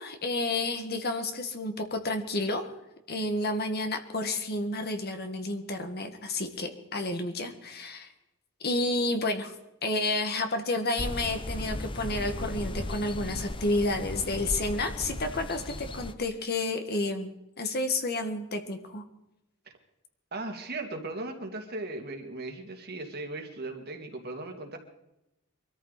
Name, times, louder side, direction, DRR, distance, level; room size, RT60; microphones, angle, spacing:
voice 1, 0.0-2.7 3.1-8.1 8.6-9.5 9.8-19.0, left 2 dB, 45° left, 6 dB, 1.9 m, -30 dB
sound 1, 11.0-16.1, left 1 dB, 25° left, 0.7 m, -36 dB
voice 2, 20.3-24.8, right 2 dB, 50° right, 4 dB, 2.3 m, -37 dB
24.0 x 13.5 x 4.2 m, 0.89 s
head